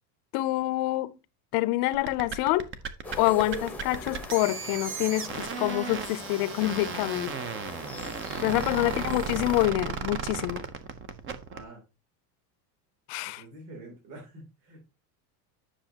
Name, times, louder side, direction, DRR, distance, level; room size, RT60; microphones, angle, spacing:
voice 1, 0.3-1.1 1.5-2.7 3.2-7.3 8.4-10.7 13.1-13.4, left 17 dB, 55° left, 0.7 m, -27 dB
sound 1, 1.9-11.6, right 6 dB, 25° right, 0.7 m, -35 dB
sound 2, 3.0-9.7, left 2 dB, 5° left, 0.9 m, -41 dB
voice 2, 8.4-8.9 11.5-11.8 13.2-14.8, right 2 dB, 85° right, 3.2 m, -47 dB
10.0 x 6.2 x 2.8 m
cardioid pair, 145°, 46 cm